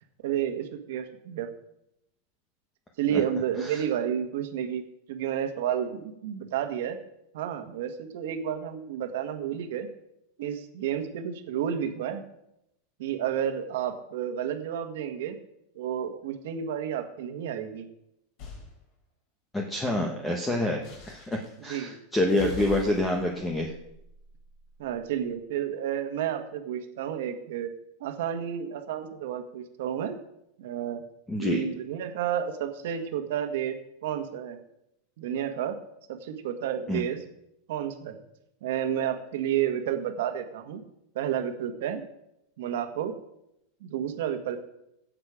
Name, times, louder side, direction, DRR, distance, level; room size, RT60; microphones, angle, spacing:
voice 1, 0.2-1.5 3.0-4.8 5.1-7.0 7.3-9.9 10.4-12.2 13.0-15.4 15.7-17.9 21.7-22.0 24.8-27.7 28.0-30.2 30.6-31.0 31.4-33.7 34.0-34.6 35.2-35.8 36.1-37.2 37.7-38.2 38.6-40.8 41.1-42.0 42.6-43.1 43.8-44.6, right 9 dB, 65° right, 6 dB, 1.6 m, -31 dB
sound 1, 18.4-18.7 20.8-21.6 22.3-24.9, left 5 dB, 40° left, 4.1 m, -42 dB
voice 2, 19.5-23.7 31.3-31.6 36.9-37.0, left 1 dB, 5° left, 1 dB, 1.0 m, -27 dB
16.5 x 6.7 x 5.0 m, 0.81 s
supercardioid pair, 170°, 0 cm